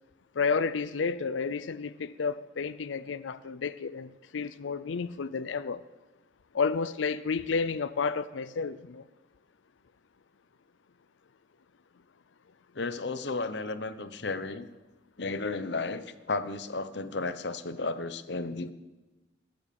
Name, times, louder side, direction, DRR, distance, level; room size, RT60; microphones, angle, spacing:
voice 1, 0.4-5.8 6.5-9.0, left 5 dB, 85° left, 0.5 m, -31 dB
voice 2, 12.7-14.7 15.2-18.7, left 3 dB, 65° left, 0.9 m, -33 dB
21.5 x 7.9 x 7.0 m
head